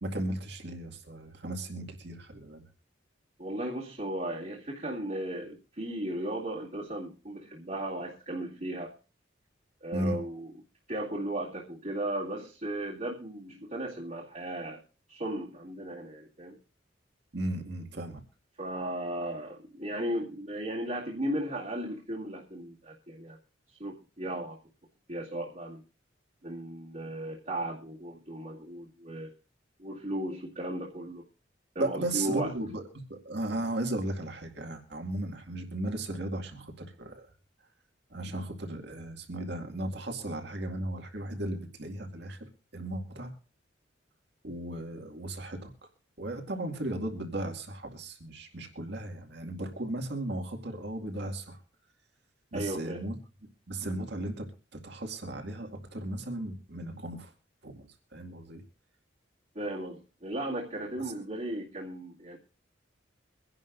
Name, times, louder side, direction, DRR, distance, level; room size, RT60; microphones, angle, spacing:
voice 1, 0.0-2.6 9.9-10.2 17.3-18.2 31.8-32.8 33.1-37.3 38.1-42.4 42.7-43.3 44.4-45.7 46.2-51.6 52.5-53.1 53.7-57.3 57.6-58.6, right 1 dB, 65° right, 4 dB, 2.2 m, -36 dB
voice 2, 3.4-8.9 9.8-10.5 10.9-14.8 15.1-16.6 18.6-23.4 23.7-24.6 25.1-25.8 26.4-29.3 29.8-31.3 31.7-32.5 52.5-53.0 59.5-62.4, right 1 dB, 45° right, -7 dB, 2.2 m, -36 dB
24.0 x 11.0 x 2.6 m, 0.35 s
head